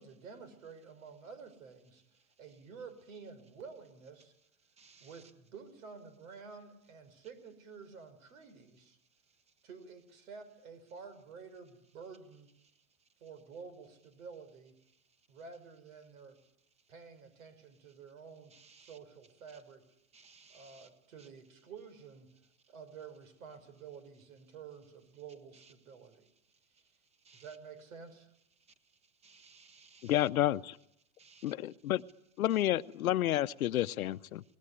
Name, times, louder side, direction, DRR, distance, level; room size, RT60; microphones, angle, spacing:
voice 1, 0.0-2.0 2.4-4.3 5.0-9.0 9.6-12.5 13.2-14.7 15.3-16.4 16.9-19.8 20.5-22.3 22.7-26.3 27.3-28.3, right 5 dB, 75° right, 13 dB, 5.8 m, -50 dB
voice 2, 4.8-5.1 18.8-18.9 20.1-20.9 27.3-27.4 29.2-30.1 31.2-31.4, right 5 dB, 15° right, 11 dB, 1.5 m, -59 dB
voice 3, 30.0-30.8 31.4-32.0 32.4-34.4, left 13 dB, 90° left, 12 dB, 0.9 m, -30 dB
23.0 x 20.5 x 10.0 m, 0.78 s
supercardioid pair, 145°, 41 cm